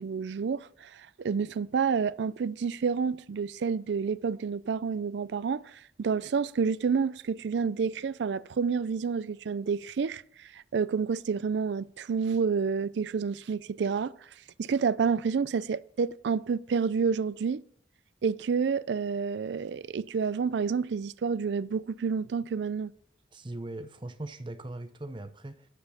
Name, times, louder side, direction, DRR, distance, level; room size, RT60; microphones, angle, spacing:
voice 1, 0.0-14.1 14.6-17.6 18.2-22.9, right 5 dB, 80° right, 0.4 m, -29 dB
voice 2, 23.3-25.7, right 2 dB, 25° right, 0.7 m, -40 dB
12.0 x 7.0 x 5.6 m
head